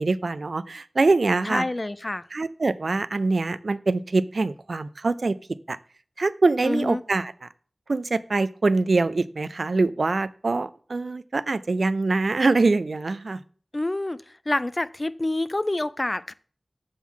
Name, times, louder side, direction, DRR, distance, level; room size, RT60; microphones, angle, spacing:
voice 1, 0.0-1.6 2.3-5.4 5.7-5.8 6.2-7.3 7.9-13.4, right 3 dB, 75° right, 16 dB, 0.4 m, -24 dB
voice 2, 1.4-2.3 6.6-7.0 13.7-16.3, left 2 dB, 35° left, 16 dB, 0.4 m, -27 dB
7.1 x 3.7 x 6.2 m, 0.43 s
wide cardioid pair, 50°, 0 cm